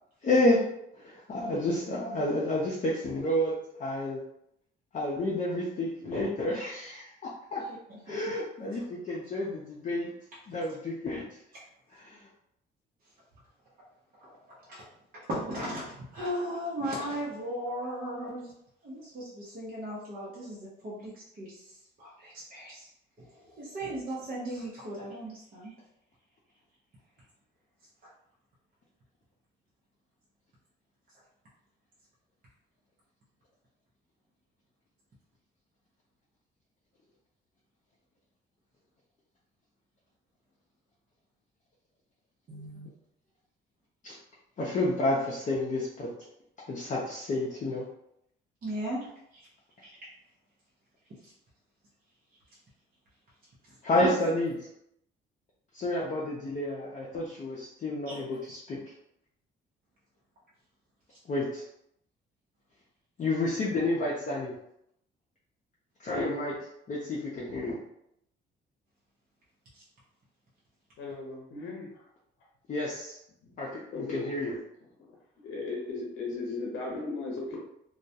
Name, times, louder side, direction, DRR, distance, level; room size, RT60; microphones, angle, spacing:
voice 1, 0.2-0.6 0.9-3.5 3.8-4.2 4.9-7.6 8.1-10.1 10.5-11.2 11.9-12.2 44.0-44.2 44.6-46.1 46.7-47.9 53.8-54.5 55.7-58.8 61.3-61.6 63.2-64.5 66.0-66.6 66.9-67.8 72.7-73.2 73.6-74.5, left 1 dB, 40° left, -5 dB, 0.5 m, -30 dB
voice 2, 14.5-14.9 15.1-18.5 18.8-22.9 23.2-25.8 42.5-42.9 48.6-49.1 49.3-49.5 49.8-49.9 51.2-51.3 54.0-54.1 58.1-58.2 69.7-69.8, equal, 45° right, -7 dB, 0.7 m, -37 dB
voice 3, 71.0-72.1 73.9-74.6 75.4-77.6, left 3 dB, 85° left, -2 dB, 0.6 m, -36 dB
2.3 x 2.1 x 2.7 m, 0.77 s
cardioid pair, 90°, 20 cm